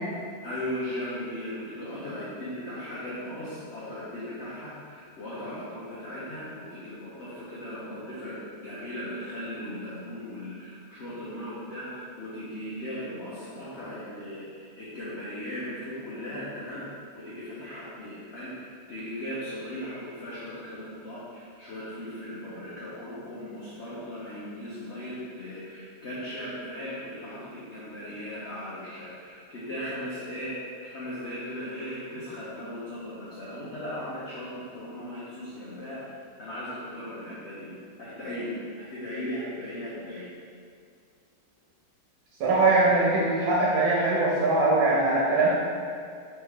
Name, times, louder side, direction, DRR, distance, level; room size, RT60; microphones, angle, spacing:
voice 1, 0.4-16.8 17.1-30.5 30.8-36.0 36.4-37.7 38.0-40.3, left 1 dB, 55° left, -9 dB, 0.8 m, -37 dB
voice 2, 42.4-45.5, right 2 dB, 90° right, -4 dB, 1.5 m, -22 dB
3.3 x 3.3 x 4.8 m, 2.2 s
omnidirectional pair, 2.1 m